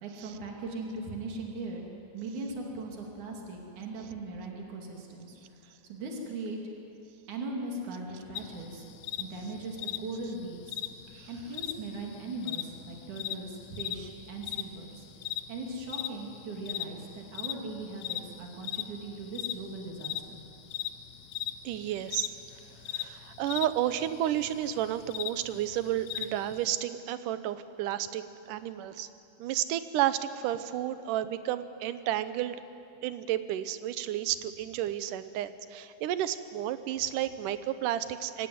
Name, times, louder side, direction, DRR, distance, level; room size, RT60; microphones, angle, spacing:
voice 1, 0.0-1.9 2.1-6.6 7.3-8.9 9.2-10.8 11.3-15.0 15.5-20.4, right 2 dB, 70° right, 0 dB, 4.0 m, -39 dB
sound 1, 8.4-26.8, left 12 dB, 75° left, 1.8 m, -39 dB
voice 2, 21.6-22.4 22.9-28.2 28.5-29.1 29.4-32.6 33.0-38.5, right 12 dB, 90° right, 12 dB, 2.4 m, -31 dB
24.0 x 16.5 x 9.4 m, 2.8 s
omnidirectional pair, 3.6 m